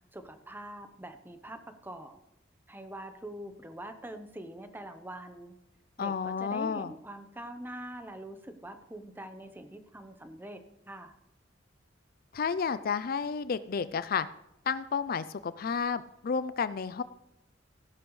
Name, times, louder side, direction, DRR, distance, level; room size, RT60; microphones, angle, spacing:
voice 1, 0.1-2.2 2.7-5.6 6.0-11.1, right 1 dB, 10° right, 8 dB, 0.9 m, -44 dB
voice 2, 6.0-6.9 12.3-14.3 14.7-17.0, left 6 dB, 55° left, 15 dB, 0.4 m, -31 dB
15.5 x 11.5 x 3.2 m, 0.85 s
head